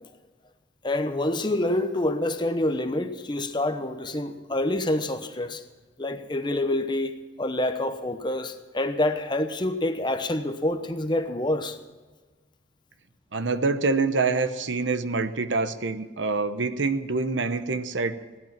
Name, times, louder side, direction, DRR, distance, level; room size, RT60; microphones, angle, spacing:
voice 1, 0.8-5.6 6.0-11.8, left 1 dB, 25° left, 0.9 m, -27 dB
voice 2, 13.3-18.4, right 3 dB, 80° right, 0.9 m, -26 dB
17.0 x 12.0 x 5.9 m
head